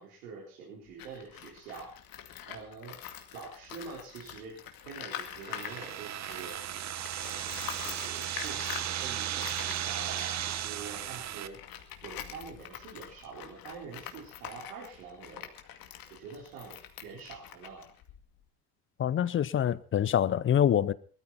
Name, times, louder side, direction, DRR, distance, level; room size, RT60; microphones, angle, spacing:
voice 1, 0.0-1.9 2.5-3.0 3.3-4.5 4.8-6.6 7.2-7.5 7.8-11.6 12.0-15.5 16.1-17.8, right 5 dB, 70° right, 4.5 m, -45 dB
Tools, 0.9-6.7 7.0-18.5, left 10 dB, 45° left, 2.2 m, -45 dB
sound 1, 5.4-11.5, right 11 dB, 35° right, 1.0 m, -35 dB
voice 2, 19.0-20.9, left 9 dB, 25° left, 0.7 m, -25 dB
19.5 x 13.5 x 4.2 m
hypercardioid pair, 75°, 47 cm